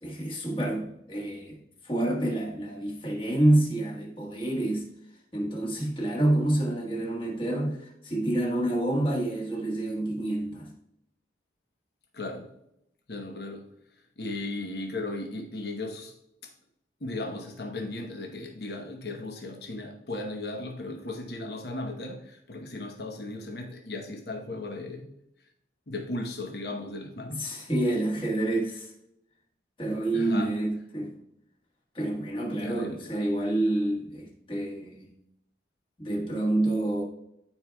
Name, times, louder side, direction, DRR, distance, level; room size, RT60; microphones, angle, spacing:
voice 1, 0.0-4.9 5.3-10.7 27.3-28.9 29.8-31.1 31.9-35.1 36.0-37.0, right 1 dB, 30° left, -1 dB, 1.4 m, -28 dB
voice 2, 12.1-12.5 13.1-13.7 14.2-16.1 16.4-16.5 17.0-25.1 25.9-27.5 30.1-30.5 32.6-33.0, left 2 dB, 65° left, 3 dB, 0.9 m, -36 dB
13.0 x 4.6 x 2.3 m, 0.78 s
head